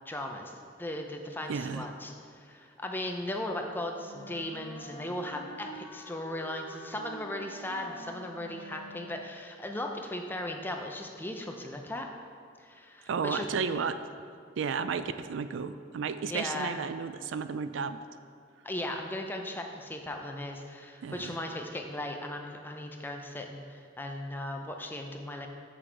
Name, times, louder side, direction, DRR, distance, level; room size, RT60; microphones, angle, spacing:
voice 1, 0.1-0.5 0.8-12.1 12.6-13.5 16.3-16.7 18.6-25.5, left 1 dB, 10° left, 3 dB, 0.6 m, -37 dB
voice 2, 1.5-1.9 13.1-14.0 14.6-18.0 21.0-21.4, right 5 dB, 85° right, 12 dB, 0.4 m, -33 dB
Wind instrument woodwind instrument, 3.9-9.4, equal, 75° left, 1.2 m, -47 dB
7.9 x 6.2 x 4.6 m, 2.2 s
head